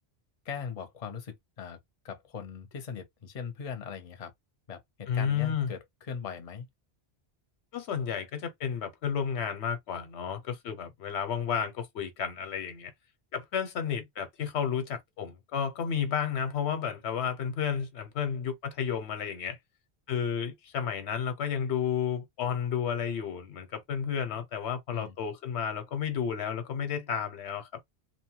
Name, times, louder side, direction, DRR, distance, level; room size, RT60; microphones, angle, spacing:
voice 1, 0.4-1.8 2.0-4.3 4.7-6.7 24.9-25.1, left 6 dB, 40° left, 0.6 m, -40 dB
voice 2, 5.1-5.7 7.7-12.9 13.3-19.6 20.1-27.7, left 7 dB, 90° left, 1.0 m, -32 dB
2.8 x 2.2 x 2.9 m
omnidirectional pair, 1.1 m